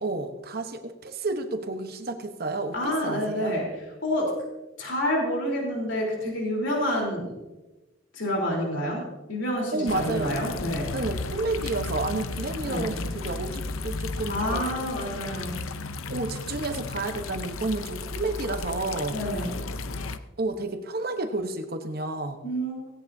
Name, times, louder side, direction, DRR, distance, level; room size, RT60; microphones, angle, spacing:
voice 1, 0.0-3.6 9.7-10.4 10.9-14.6 16.1-19.2 20.4-22.4, right 2 dB, 50° right, 7 dB, 1.0 m, -31 dB
voice 2, 2.7-3.7 4.0-4.3 4.8-7.3 8.1-9.0 9.3-10.9 12.7-12.9 14.3-15.6 19.1-19.5 22.4-22.9, equal, 65° left, -1 dB, 3.7 m, -28 dB
sound 1, 9.9-20.2, left 3 dB, 90° left, 0.7 m, -34 dB
17.5 x 17.0 x 2.7 m, 1.1 s
head